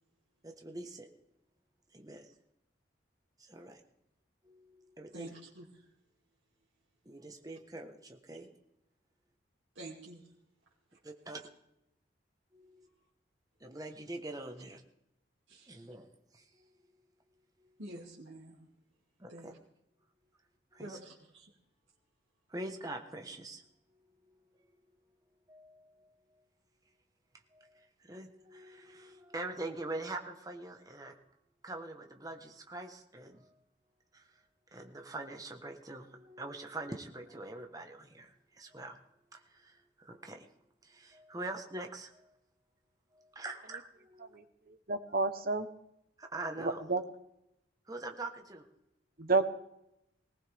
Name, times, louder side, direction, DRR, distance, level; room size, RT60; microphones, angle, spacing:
voice 1, 0.4-1.1 1.9-2.3 3.4-3.8 4.4-5.3 7.0-8.5 11.0-11.4 12.5-12.9 13.6-14.8 15.7-16.6 19.2-19.5 20.7-21.0 22.5-23.6 25.5-26.4 27.5-31.1 31.6-33.6 34.1-34.4 34.7-39.0 39.3-40.5 40.8-42.3 43.4-44.4 46.2-46.8 47.9-48.7, right 2 dB, 20° right, 4 dB, 1.2 m, -44 dB
voice 2, 5.1-5.9 9.7-10.3 10.9-11.0 15.5-15.8 17.8-18.7 19.3-19.6 20.8-21.5, right 1 dB, 75° right, -5 dB, 2.6 m, -48 dB
voice 3, 44.9-45.7 46.9-47.0 49.2-49.5, right 3 dB, 50° right, 9 dB, 1.0 m, -28 dB
19.5 x 18.0 x 3.5 m, 0.84 s
head